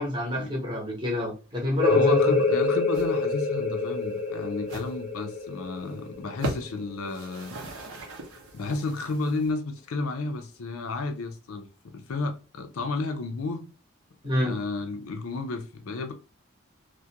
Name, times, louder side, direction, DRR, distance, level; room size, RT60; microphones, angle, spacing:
voice 1, 0.0-2.4 14.2-14.6, left 1 dB, 20° right, 0.8 m, -28 dB
sound 1, 1.8-7.2, left 3 dB, 35° left, 0.5 m, -26 dB
voice 2, 1.9-7.5 8.5-13.7 14.4-16.1, left 3 dB, 80° left, 0.5 m, -32 dB
sound 2, 2.3-2.6 2.9-3.1 3.4-3.6 4.0-4.1 4.6-4.9 5.4-5.5 5.8-5.9 6.3-6.8 7.0-9.5, right 1 dB, 80° right, 0.7 m, -38 dB
2.3 x 2.1 x 2.7 m
head